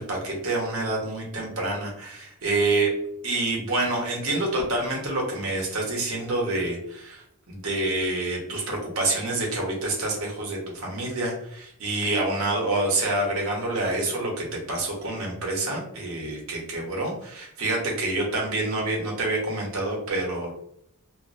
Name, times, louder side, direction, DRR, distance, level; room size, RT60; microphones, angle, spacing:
voice 1, 0.0-2.9 3.2-20.5, right 2 dB, 70° right, -1 dB, 0.8 m, -27 dB
2.4 x 2.0 x 2.5 m, 0.73 s
head